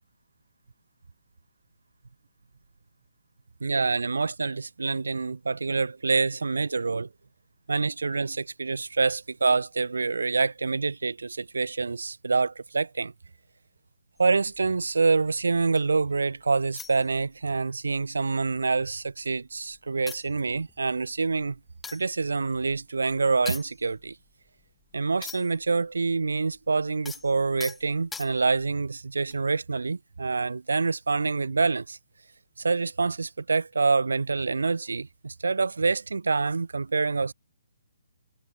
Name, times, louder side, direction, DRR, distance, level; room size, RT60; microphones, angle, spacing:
voice 1, 3.6-7.1 7.7-13.1 14.2-21.6 21.9-24.1 24.9-32.0 32.6-37.3, right 4 dB, 70° right, 1.5 m, -26 dB
sound 1, 14.2-16.0 16.7-17.6 17.9-18.1 18.4-19.3 19.7-19.8 20.1-25.7 26.0-28.7 29.3-29.5, left 6 dB, 10° left, 4.2 m, -44 dB
figure-of-eight pair, 135°, 0 cm